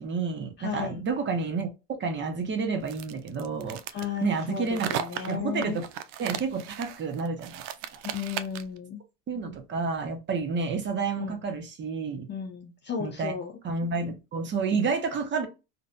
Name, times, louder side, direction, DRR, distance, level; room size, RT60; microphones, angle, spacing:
voice 1, 0.0-1.7 2.0-3.8 4.2-4.9 5.3-5.9 6.2-7.6 7.9-8.0 9.3-12.3 13.0-13.3 13.6-15.5, right 4 dB, 30° right, 0.6 m, -30 dB
voice 2, 0.6-1.0 3.9-5.8 8.0-9.0 11.2-11.4 12.3-13.5, left 7 dB, 30° left, 0.4 m, -34 dB
sound 1, 2.9-8.8, right 10 dB, 70° right, 0.5 m, -36 dB
2.5 x 2.1 x 2.4 m
supercardioid pair, 105°, 40 cm